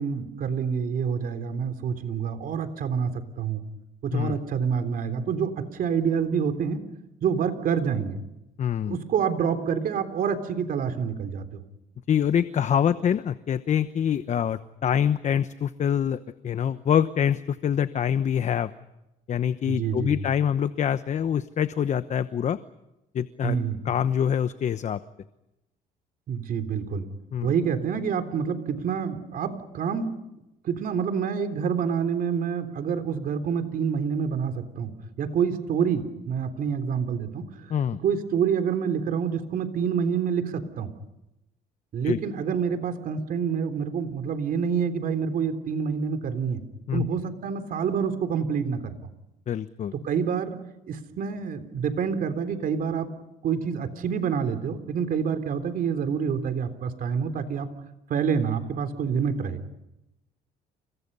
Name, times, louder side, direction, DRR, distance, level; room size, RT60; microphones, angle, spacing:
voice 1, 0.0-3.6 4.0-6.8 7.2-8.2 8.8-11.6 19.7-20.1 23.4-23.8 26.3-27.0 27.4-30.1 30.6-34.9 35.2-37.5 38.0-40.9 41.9-46.6 46.9-49.0 50.0-50.6 50.9-53.1 53.4-57.7 58.1-59.6, right 7 dB, 55° right, 8 dB, 3.6 m, -27 dB
voice 2, 8.6-9.0 12.1-18.7 19.3-22.6 23.1-23.6 23.8-25.0 27.3-27.5 37.7-38.0 42.0-42.2 46.9-47.1 49.5-49.9, left 8 dB, 45° left, 12 dB, 1.0 m, -25 dB
29.5 x 27.0 x 5.6 m, 0.91 s
cardioid pair, 110°, 17 cm